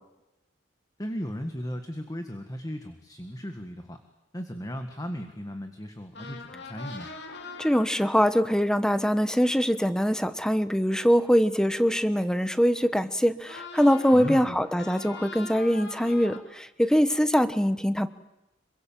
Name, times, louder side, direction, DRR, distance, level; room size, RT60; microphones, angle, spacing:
voice 1, 1.0-4.0 4.3-7.1 14.1-14.6, equal, 20° left, 6 dB, 1.8 m, -36 dB
sound 1, 6.1-10.9 13.4-16.4, left 3 dB, 60° left, 3.3 m, -43 dB
voice 2, 7.6-18.1, equal, 5° left, 12 dB, 1.1 m, -23 dB
27.0 x 24.0 x 7.6 m, 0.94 s
head